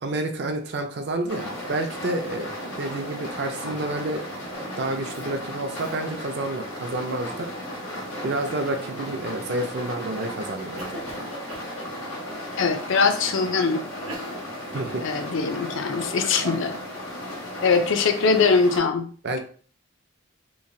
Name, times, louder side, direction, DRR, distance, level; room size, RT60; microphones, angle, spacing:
voice 1, 0.0-2.5 2.8-4.3 4.8-7.5 8.2-11.0 14.7-15.0 19.2-19.4, right 2 dB, 50° right, 6 dB, 0.4 m, -29 dB
Cough, 1.2-2.4 2.7-3.4 4.4-4.8 5.1-5.3 5.7-6.0 6.5-6.9 8.5-9.3 9.9-10.3 10.8-12.5 13.2-13.3 13.9-15.7 16.3-16.8, right 2 dB, 90° right, 0.8 m, -43 dB
sound 1, 1.3-18.8, equal, 85° left, 1.4 m, -35 dB
voice 2, 12.6-13.8 15.0-16.8 17.6-19.1, left 4 dB, 60° left, 6 dB, 0.4 m, -22 dB
3.0 x 2.4 x 2.6 m, 0.43 s
head